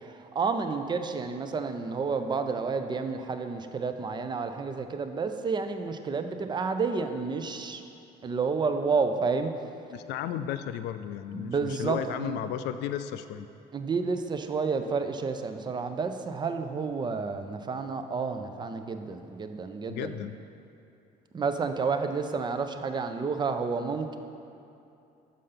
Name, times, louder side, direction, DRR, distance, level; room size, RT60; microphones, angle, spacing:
voice 1, 0.0-7.8 8.2-9.5 11.3-12.4 13.7-20.1 21.3-24.2, right 4 dB, 25° right, 8 dB, 0.5 m, -30 dB
voice 2, 9.9-13.5 19.9-20.4, left 10 dB, 80° left, 10 dB, 0.4 m, -34 dB
6.6 x 5.1 x 5.6 m, 2.7 s
cardioid pair, 110°, 17 cm